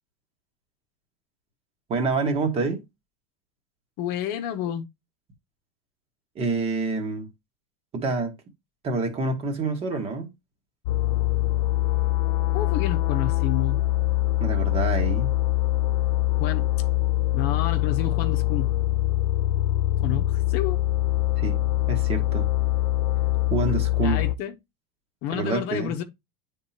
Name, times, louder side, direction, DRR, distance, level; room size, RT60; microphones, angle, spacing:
voice 1, 1.9-2.8 6.3-7.3 7.9-8.3 8.8-10.3 14.4-15.4 21.4-21.6 21.9-22.5 23.5-24.2 25.3-26.0, right 3 dB, 30° right, 1.4 m, -27 dB
voice 2, 4.0-4.9 12.5-13.8 16.4-16.7 17.3-18.7 20.0-20.8 24.0-24.5 25.2-26.0, left 10 dB, 50° left, 0.8 m, -30 dB
sound 1, 10.9-24.4, left 15 dB, 85° left, 0.5 m, -23 dB
9.5 x 3.7 x 2.8 m
supercardioid pair, 150°, 20 cm